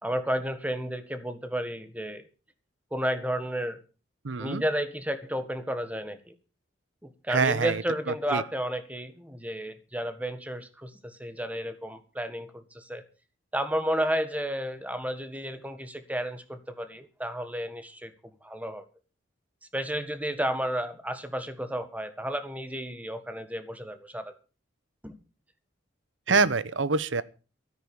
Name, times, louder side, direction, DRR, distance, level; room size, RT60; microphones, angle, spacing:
voice 1, 0.0-2.2 2.9-3.8 4.4-6.3 7.0-13.0 13.5-18.1 18.4-18.8 19.7-24.3 25.0-25.2 26.3-26.4, equal, 10° right, 1.6 m, -32 dB
voice 2, 4.2-4.6 7.3-7.8 8.3-8.4 26.3-27.2, right 4 dB, 80° right, 0.9 m, -25 dB
13.5 x 9.7 x 7.1 m
head